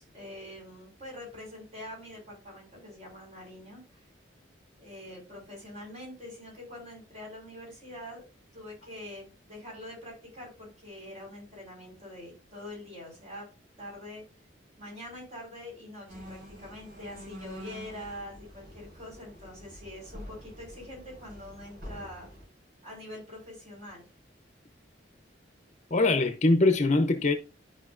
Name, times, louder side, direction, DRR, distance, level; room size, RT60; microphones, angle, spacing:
voice 1, 0.0-4.1 4.8-8.2 8.5-13.5 13.8-14.2 14.8-22.3 22.8-24.1, left 1 dB, 40° right, 4.8 m, -44 dB
sound 1, 16.1-22.4, equal, 55° right, 4.8 m, -46 dB
voice 2, 25.9-27.3, left 2 dB, 40° left, 0.9 m, -22 dB
12.0 x 5.2 x 2.6 m
head